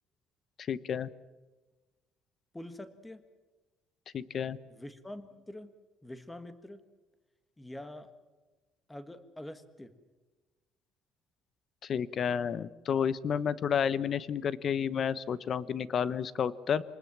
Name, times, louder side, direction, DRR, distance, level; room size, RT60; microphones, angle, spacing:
voice 1, 0.7-1.1 4.1-4.6 11.8-16.8, left 7 dB, 40° left, 17 dB, 0.9 m, -31 dB
voice 2, 2.5-3.2 4.7-5.7 6.0-6.8 7.6-8.1 8.9-9.9, left 1 dB, 10° left, 11 dB, 1.6 m, -45 dB
27.0 x 20.0 x 7.4 m, 1.2 s
cardioid pair, 145°, 0 cm